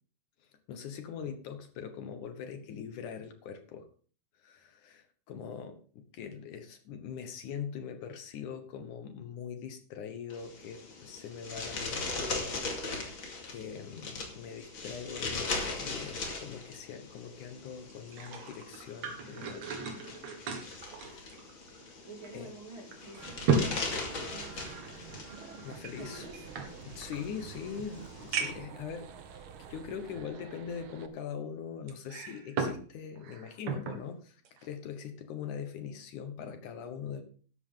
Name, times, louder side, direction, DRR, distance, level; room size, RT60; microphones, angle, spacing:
voice 1, 0.7-3.9 4.4-12.5 13.5-19.7 20.6-21.4 22.3-22.5 25.6-26.3 26.9-37.2, left 7 dB, 70° left, 7 dB, 2.5 m, -42 dB
sound 1, 10.3-28.5, left 3 dB, 40° left, 2.7 m, -40 dB
sound 2, 17.9-21.9 22.2-22.3 22.9-24.9 25.8-27.2 27.8-27.9 28.3-28.8 29.5-29.6 31.9-32.8 33.2-34.0 34.5-34.7, right 4 dB, 55° right, 2.9 m, -35 dB
voice 2, 22.0-24.7 26.0-26.4, right 2 dB, 40° right, 1 dB, 2.9 m, -49 dB
sound 3, 23.2-31.1, right 7 dB, 90° right, 1.1 m, -48 dB
13.0 x 11.0 x 3.8 m, 0.41 s
omnidirectional pair, 3.9 m